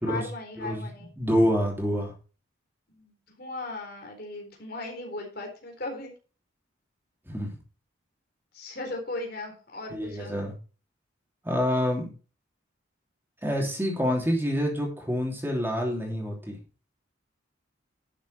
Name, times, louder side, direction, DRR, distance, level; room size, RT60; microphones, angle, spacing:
voice 1, 0.0-1.1 2.9-6.1 8.5-10.4, left 2 dB, 50° left, 2 dB, 4.0 m, -37 dB
voice 2, 0.6-2.1 7.3-7.6 9.9-10.5 11.4-12.1 13.4-16.6, equal, 10° right, 0 dB, 3.0 m, -27 dB
12.0 x 7.1 x 4.3 m, 0.35 s
head